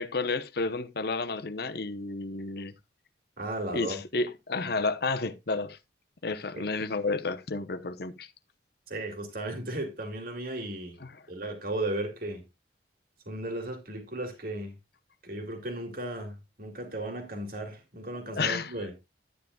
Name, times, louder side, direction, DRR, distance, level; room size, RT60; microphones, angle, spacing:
voice 1, 0.0-2.7 3.7-5.8 6.2-8.3 18.3-18.7, left 3 dB, 55° left, 0.9 m, -31 dB
voice 2, 3.4-4.0 6.5-6.6 8.9-11.0 11.3-12.4 13.3-14.7 15.2-18.9, right 1 dB, 50° right, 2.4 m, -35 dB
12.0 x 9.3 x 2.3 m
head